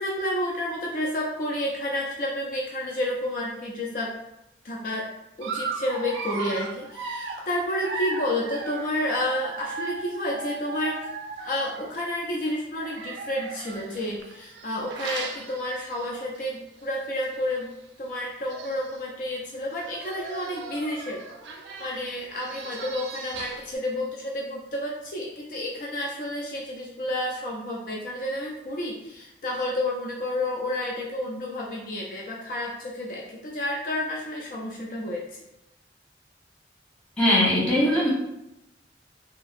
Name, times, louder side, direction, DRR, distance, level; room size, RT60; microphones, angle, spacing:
voice 1, 0.0-4.1 4.6-5.1 5.4-11.1 11.4-17.7 18.0-21.2 21.8-35.3, left 1 dB, 50° left, -2 dB, 0.4 m, -30 dB
Dog, 5.4-12.0 12.8-16.4 16.8-17.0 17.2-17.3 18.2-18.3 18.5-19.0 19.7-23.8, right 4 dB, 80° right, 0.4 m, -37 dB
voice 2, 37.2-38.1, left 1 dB, 5° left, -7 dB, 0.7 m, -20 dB
2.8 x 2.5 x 2.4 m, 0.88 s
head